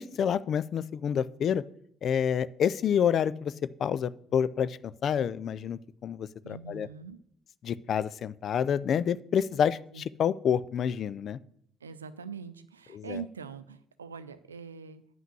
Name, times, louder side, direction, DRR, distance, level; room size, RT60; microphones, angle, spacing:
voice 1, 0.0-1.6 2.0-3.5 3.8-6.9 7.6-11.4 12.9-13.2, left 8 dB, 55° left, 18 dB, 0.4 m, -28 dB
voice 2, 6.4-7.2 9.9-10.0 11.8-15.0, right 6 dB, 90° right, 12 dB, 0.5 m, -43 dB
9.3 x 5.7 x 6.2 m, 0.68 s
hypercardioid pair, 50°, 0 cm